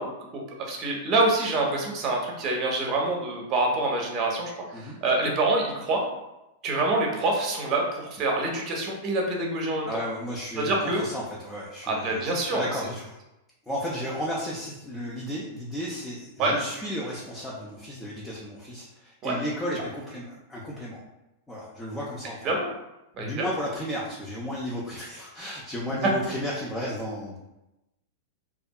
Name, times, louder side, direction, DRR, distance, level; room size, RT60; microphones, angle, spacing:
voice 1, 0.0-6.0 6.6-9.9 10.6-11.0 11.8-12.7 16.4-16.6 19.2-19.4 22.4-22.7 23.1-23.5, right 2 dB, 40° right, 0 dB, 0.7 m, -26 dB
voice 2, 9.8-13.2 13.7-20.2 20.5-21.0 21.5-22.5 23.2-27.4, equal, 10° left, -6 dB, 0.5 m, -34 dB
2.6 x 2.4 x 2.2 m, 0.94 s
hypercardioid pair, 105°, 0 cm